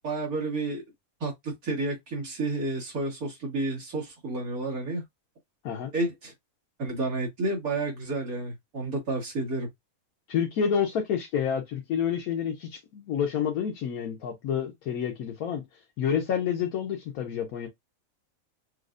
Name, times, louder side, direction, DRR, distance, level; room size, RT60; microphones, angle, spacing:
voice 1, 0.0-0.8 1.2-5.0 5.9-6.3 6.8-9.7, right 2 dB, 90° right, 2.4 m, -30 dB
voice 2, 10.3-15.6 16.0-17.7, left 8 dB, 90° left, 1.3 m, -29 dB
6.2 x 2.4 x 2.5 m
omnidirectional pair, 1.5 m